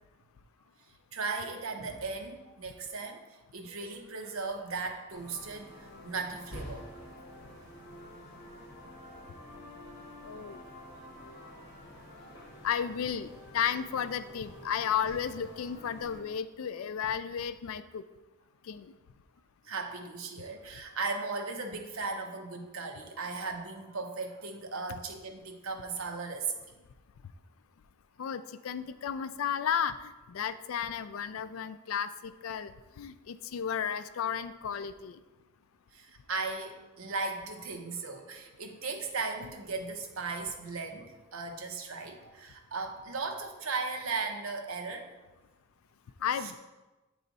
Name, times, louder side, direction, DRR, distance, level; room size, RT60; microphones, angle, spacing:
voice 1, 1.1-6.9 9.1-9.2 10.4-10.5 11.3-11.5 12.2-12.3 19.6-26.6 35.9-45.1 46.4-46.5, right 4 dB, 75° right, 4 dB, 0.8 m, -37 dB
sound 1, 5.1-16.2, equal, 50° left, 1.4 m, -48 dB
voice 2, 10.2-10.6 12.6-18.1 18.7-18.9 28.2-35.2 46.2-46.6, left 8 dB, 80° left, 12 dB, 0.4 m, -33 dB
8.9 x 3.2 x 4.0 m, 1.1 s
head